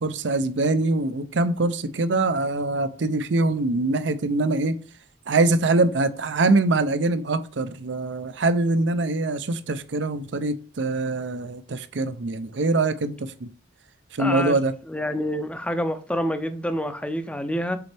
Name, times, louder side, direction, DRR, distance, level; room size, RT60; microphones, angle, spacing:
voice 1, 0.0-4.8 5.3-13.5 14.1-14.7, right 2 dB, 75° right, 0.6 m, -23 dB
voice 2, 14.2-14.5 14.9-17.8, equal, 5° left, 0.5 m, -27 dB
6.8 x 4.4 x 3.4 m
head